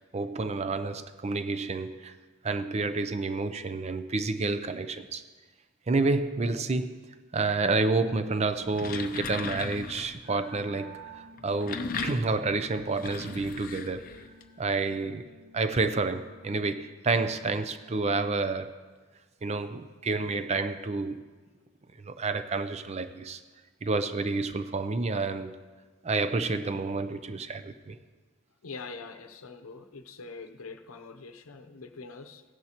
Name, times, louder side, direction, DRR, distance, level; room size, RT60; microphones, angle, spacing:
voice 1, 0.1-2.1 2.4-5.2 5.9-7.0 7.3-14.1 14.6-18.8 19.4-21.2 22.0-23.4 23.8-25.6 26.0-28.0, right 3 dB, 30° right, 0.5 m, -29 dB
sound 1, 8.5-10.2 11.3-14.4, left 5 dB, 40° left, 0.5 m, -37 dB
sound 2, 10.2-16.9, right 1 dB, 75° right, 1.4 m, -52 dB
voice 2, 28.6-32.4, left 4 dB, 75° left, 0.8 m, -44 dB
16.0 x 10.5 x 3.0 m
head